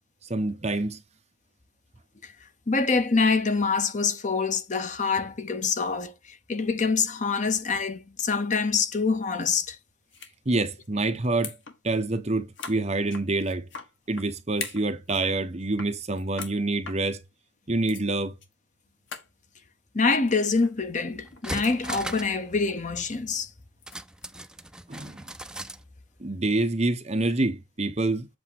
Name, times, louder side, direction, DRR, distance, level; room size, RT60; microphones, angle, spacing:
voice 1, 0.3-1.0 10.4-11.6 11.8-13.7 14.1-17.2 17.7-18.4 24.9-25.2 26.2-28.3, right 2 dB, 35° right, 1.0 m, -27 dB
voice 2, 2.2-9.8 19.9-23.5, left 4 dB, 40° left, 0.8 m, -26 dB
sound 1, 10.1-10.3 10.6-10.9 11.2-11.8 12.0-12.1 12.5-14.3 14.5-15.3 15.6-16.6 16.9-17.0 17.6-17.7 17.9-18.0 18.4-18.5 18.8-18.9 19.1-19.3 20.3-20.7 21.1-21.8 22.2-22.4 23.3-24.3, left 6 dB, 70° left, 1.5 m, -41 dB
sound 2, 20.8-20.9 21.3-22.4 22.7-22.8 23.9-25.8 26.2-26.3, right 1 dB, 5° right, 0.4 m, -38 dB
7.9 x 2.9 x 6.1 m
head